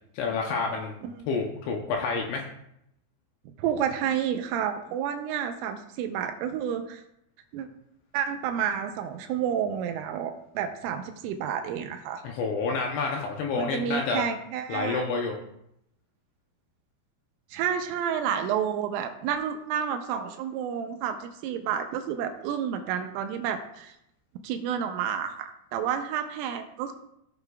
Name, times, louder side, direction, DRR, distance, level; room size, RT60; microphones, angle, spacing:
voice 1, 0.1-0.9 1.3-2.5 12.2-14.2 14.7-15.4, left 4 dB, 80° left, 1 dB, 2.7 m, -29 dB
voice 2, 3.6-7.0 7.5-7.7 8.1-12.2 13.6-15.0 17.5-24.0 24.4-26.9, right 8 dB, 85° right, 6 dB, 3.1 m, -30 dB
16.0 x 6.6 x 2.4 m, 0.78 s
omnidirectional pair, 6.0 m